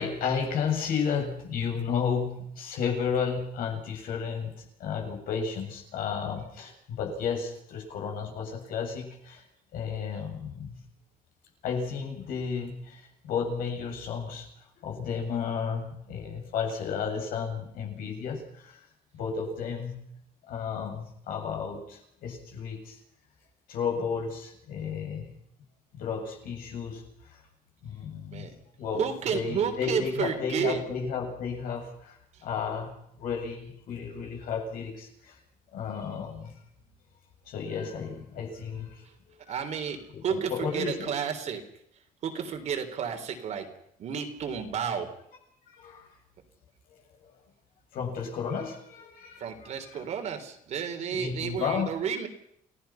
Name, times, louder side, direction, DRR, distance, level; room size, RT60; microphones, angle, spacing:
voice 1, 0.0-9.4 9.7-10.8 11.6-14.5 14.8-18.8 19.1-20.0 20.5-23.0 23.7-25.3 25.9-27.0 27.8-28.5 28.8-29.0 29.3-32.1 32.4-32.9 33.2-35.4 35.7-36.5 37.5-39.0 40.1-41.1 45.8-46.1 47.9-49.5 49.9-50.0 51.1-51.9, left 6 dB, 70° left, 2 dB, 7.6 m, -32 dB
voice 2, 29.0-30.8 32.3-32.4 39.5-41.6 42.2-43.7 44.0-45.1 49.4-52.3, right 7 dB, 50° right, 5 dB, 3.6 m, -31 dB
29.5 x 17.5 x 5.8 m, 0.72 s
cardioid pair, 175°, 15 cm